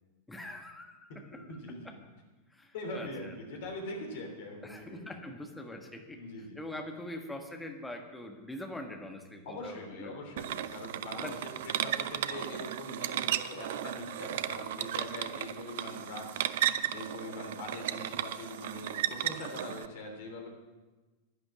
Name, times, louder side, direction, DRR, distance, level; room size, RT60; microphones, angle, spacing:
voice 1, 0.3-1.6 1.8-1.9 2.5-3.3 4.6-6.2 6.5-10.2 11.2-11.4, left 1 dB, 5° left, 4 dB, 1.4 m, -43 dB
voice 2, 1.1-1.9 2.7-5.1 6.1-6.6 9.4-20.5, left 2 dB, 55° left, 2 dB, 3.2 m, -43 dB
sound 1, 10.4-19.9, right 12 dB, 55° right, 0.5 m, -35 dB
11.0 x 11.0 x 6.0 m, 1.2 s
figure-of-eight pair, 90°, 0 cm